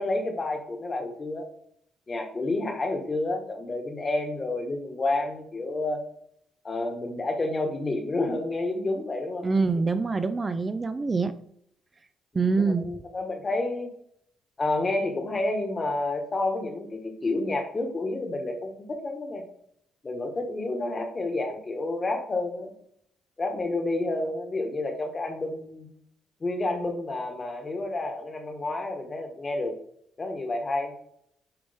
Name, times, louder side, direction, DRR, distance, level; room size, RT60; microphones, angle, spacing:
voice 1, 0.0-1.5 2.1-6.0 6.6-9.5 12.4-13.9 14.6-19.4 20.0-22.7 23.4-25.9 26.4-29.7 30.2-30.9, left 2 dB, 30° left, 4 dB, 1.5 m, -29 dB
voice 2, 9.4-11.3 12.3-12.8, right 4 dB, 30° right, 10 dB, 0.5 m, -25 dB
9.3 x 3.2 x 3.5 m, 0.68 s
cardioid pair, 90°, 0 cm